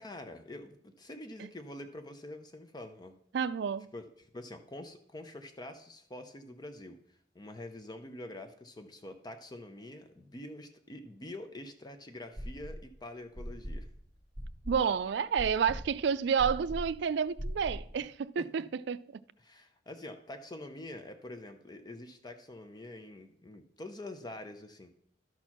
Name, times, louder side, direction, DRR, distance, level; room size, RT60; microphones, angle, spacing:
voice 1, 0.0-3.1 3.9-7.0 7.3-13.9 18.4-18.5 19.4-24.9, left 1 dB, 25° left, 0.6 m, -46 dB
voice 2, 3.3-3.9 14.7-19.0, right 6 dB, 65° right, 0.4 m, -30 dB
sound 1, 12.3-12.9 13.3-18.0, equal, 10° right, 1.6 m, -40 dB
12.0 x 4.4 x 5.9 m
head